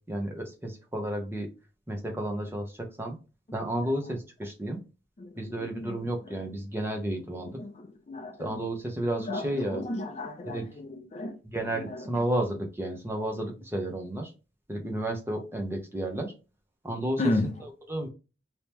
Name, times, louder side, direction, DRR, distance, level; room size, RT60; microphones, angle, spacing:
voice 1, 0.1-1.5 1.9-3.2 3.5-4.8 5.4-7.6 8.4-9.8 10.5-10.6 11.4-14.3 14.7-16.3 16.8-17.2 17.9-18.1, right 1 dB, 10° right, 0.8 m, -32 dB
voice 2, 5.2-6.0 6.3-6.4 7.3-8.6 9.2-12.3 17.2-17.5, left 2 dB, 35° left, 0.4 m, -34 dB
2.9 x 2.9 x 3.4 m
head